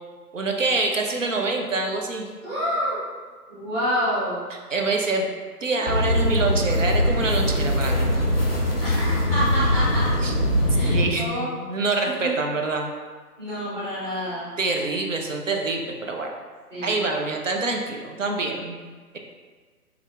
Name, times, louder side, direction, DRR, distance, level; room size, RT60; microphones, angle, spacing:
voice 1, 0.3-2.3 4.7-5.3 5.6-8.1 10.2-10.3 10.9-12.9 14.6-16.3 16.8-18.8, right 3 dB, 55° right, 2 dB, 0.5 m, -25 dB
voice 2, 2.4-3.0 3.5-4.4 8.8-10.1 10.7-11.6 12.0-12.3 13.4-14.5 16.7-17.0, equal, 15° right, -12 dB, 1.2 m, -28 dB
sound 1, 5.9-11.0, left 1 dB, 40° left, 0.5 m, -22 dB
3.5 x 3.3 x 2.3 m, 1.5 s
figure-of-eight pair, 145°, 47 cm